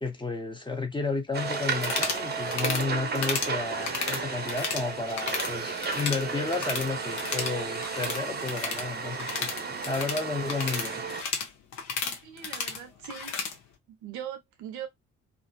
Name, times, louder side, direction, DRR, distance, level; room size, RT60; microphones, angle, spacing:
voice 1, 0.0-9.5 9.9-11.0, left 3 dB, 15° left, 0.7 m, -32 dB
sound 1, 1.3-11.2, right 5 dB, 30° right, 0.7 m, -33 dB
sound 2, 1.8-2.2 2.5-2.8 3.1-3.5 3.8-4.8 5.1-5.5 5.8-6.9 7.1-13.5, left 5 dB, 55° left, 0.8 m, -33 dB
voice 2, 12.2-13.4 13.9-14.9, right 9 dB, 60° right, 0.7 m, -40 dB
2.5 x 2.3 x 2.2 m
figure-of-eight pair, 40°, 33 cm